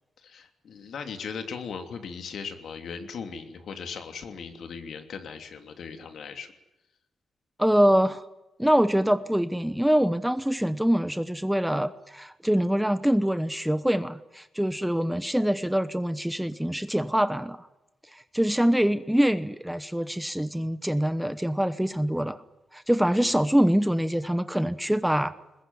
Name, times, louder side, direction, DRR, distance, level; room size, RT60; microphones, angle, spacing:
voice 1, 0.2-6.5 23.1-23.5, left 6 dB, 70° left, 6 dB, 2.9 m, -38 dB
voice 2, 7.6-8.2 8.6-17.6 18.1-22.4 22.7-25.3, equal, 5° right, 13 dB, 0.8 m, -24 dB
21.5 x 21.0 x 9.7 m, 0.96 s
wide cardioid pair, 135°, 0 cm